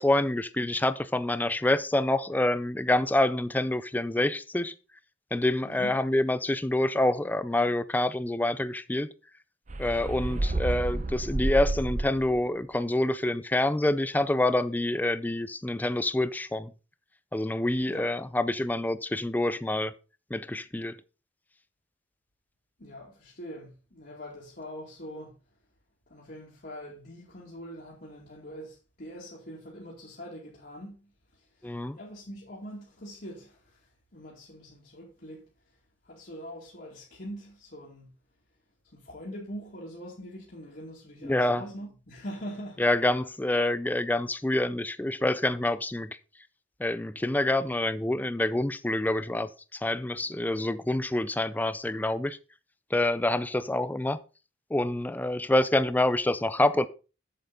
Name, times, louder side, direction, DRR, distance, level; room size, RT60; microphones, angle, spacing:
voice 1, 0.0-4.7 5.3-9.1 9.8-16.7 17.3-19.9 20.3-21.0 31.6-32.0 41.2-41.6 42.8-46.2 46.8-52.4 52.9-54.2 54.7-56.9, left 1 dB, 10° left, 0.4 m, -27 dB
sound 1, 9.7-12.5, right 2 dB, 40° right, 0.7 m, -30 dB
voice 2, 22.8-25.4 26.1-35.5 36.0-38.1 38.8-42.8, equal, 55° left, 2.3 m, -43 dB
7.7 x 7.6 x 3.9 m
head